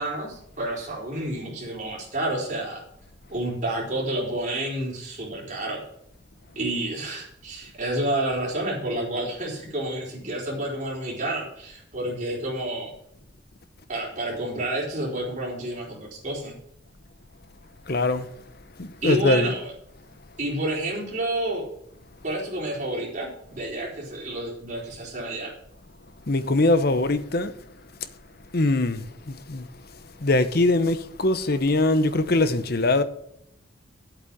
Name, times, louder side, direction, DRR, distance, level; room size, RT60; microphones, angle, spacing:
voice 1, 0.0-2.8 3.3-5.8 6.5-12.9 13.9-16.5 19.0-19.7 20.4-21.6 22.2-25.5, right 1 dB, 40° right, 4.4 m, -29 dB
voice 2, 17.9-18.3 18.8-19.5 26.3-27.5 28.5-29.7 30.2-33.0, left 2 dB, 50° left, 0.9 m, -22 dB
8.5 x 8.1 x 7.4 m
head